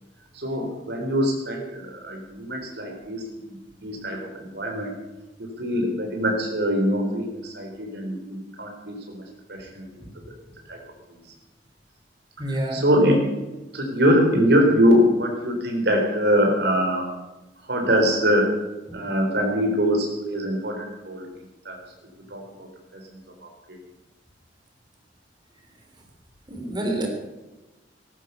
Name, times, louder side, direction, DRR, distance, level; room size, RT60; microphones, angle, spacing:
voice 1, 0.3-4.9 5.4-9.2 9.5-10.0 10.7-10.8 12.4-13.3 13.7-17.1 17.7-18.5 18.9-21.3 21.6-21.8 22.3-22.7 22.9-23.8, equal, 65° right, 1 dB, 3.9 m, -23 dB
voice 2, 12.4-12.8 18.9-19.0 26.5-27.1, right 1 dB, 25° right, 2 dB, 3.5 m, -28 dB
15.5 x 12.0 x 6.8 m, 1.1 s
head